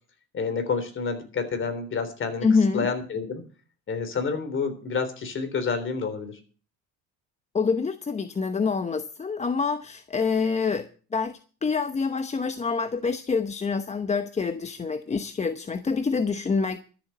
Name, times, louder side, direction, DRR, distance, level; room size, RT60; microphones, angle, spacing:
voice 1, 0.3-2.5 2.7-3.4 3.9-6.4, left 5 dB, 40° left, 9 dB, 3.5 m, -29 dB
voice 2, 2.4-2.9 7.5-16.8, left 5 dB, 20° left, 9 dB, 0.9 m, -26 dB
13.0 x 7.5 x 7.9 m, 0.39 s
cardioid pair, 115°, 30 cm